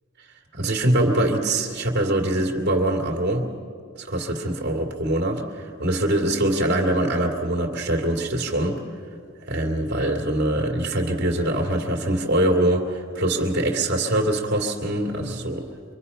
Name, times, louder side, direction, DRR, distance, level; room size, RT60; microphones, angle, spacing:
voice 1, 0.5-3.5 4.0-8.8 9.5-15.7, right 1 dB, 55° right, 1 dB, 2.5 m, -23 dB
25.5 x 24.0 x 5.6 m, 2.3 s
head